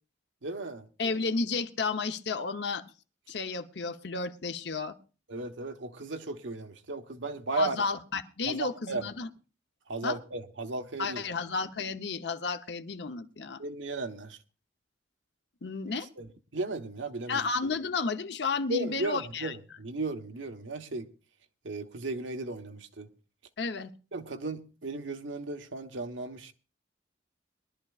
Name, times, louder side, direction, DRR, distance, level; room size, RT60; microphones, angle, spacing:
voice 1, 0.4-0.9 5.3-7.8 8.5-9.1 9.9-11.2 13.6-14.4 16.2-17.4 18.7-21.1 21.6-23.1 24.1-26.5, right 2 dB, 85° right, 1.1 m, -35 dB
voice 2, 1.0-2.8 3.3-5.0 7.6-9.3 10.0-10.2 11.0-13.6 15.6-16.1 17.3-19.5 23.6-23.9, left 4 dB, 65° left, 0.8 m, -32 dB
22.5 x 12.0 x 2.4 m
head